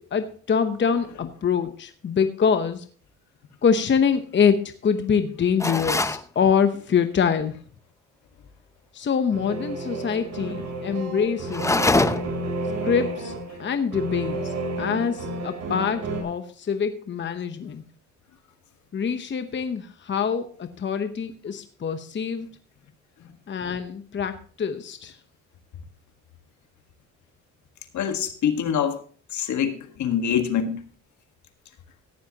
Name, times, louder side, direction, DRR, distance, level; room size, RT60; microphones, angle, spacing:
voice 1, 0.0-2.9 3.6-7.5 8.9-11.9 12.8-13.3 13.6-17.8 18.9-22.5 23.5-25.2, left 6 dB, 40° left, 9 dB, 0.9 m, -25 dB
sound 1, 5.6-6.2 11.5-12.4, left 2 dB, 10° left, 0.6 m, -23 dB
sound 2, 9.3-16.2, right 2 dB, 65° right, 3.8 m, -31 dB
voice 2, 27.9-29.0 29.3-30.8, left 8 dB, 70° left, 7 dB, 1.7 m, -25 dB
14.5 x 10.5 x 2.9 m, 0.42 s
cardioid pair, 90°, 30 cm